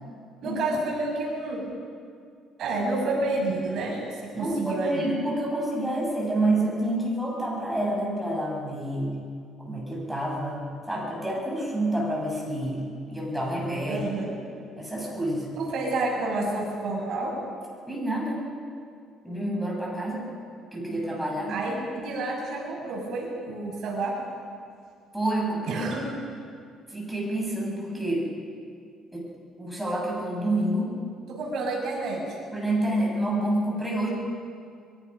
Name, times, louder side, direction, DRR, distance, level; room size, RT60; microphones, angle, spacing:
voice 1, 0.4-1.6 2.6-5.0 13.9-14.3 15.6-17.3 21.5-24.1 25.7-26.0 31.3-32.4, right 2 dB, 60° right, -2 dB, 6.8 m, -29 dB
voice 2, 4.3-9.1 9.6-12.8 13.1-14.0 14.8-15.5 17.9-18.4 19.2-20.2 20.7-21.6 25.1-25.9 26.9-28.3 29.1-29.2 29.6-30.9 32.5-34.1, right 1 dB, 5° right, -3 dB, 6.7 m, -28 dB
24.0 x 22.5 x 5.6 m, 2.2 s
cardioid pair, 135°, 0 cm